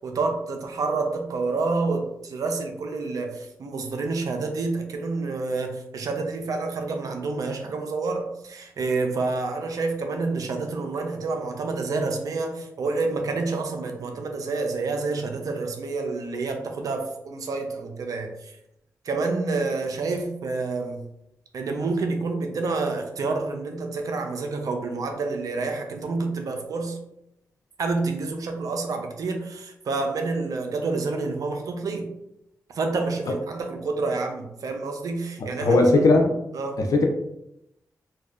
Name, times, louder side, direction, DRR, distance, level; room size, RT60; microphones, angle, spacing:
voice 1, 0.0-18.5 19.0-21.0 21.5-27.0 27.8-32.1 32.7-36.1 36.5-36.8, right 3 dB, 70° right, 4 dB, 0.5 m, -28 dB
voice 2, 35.6-36.3 36.9-37.1, left 2 dB, 70° left, 3 dB, 0.4 m, -17 dB
2.6 x 2.2 x 2.3 m, 0.82 s
cardioid pair, 60°, 6 cm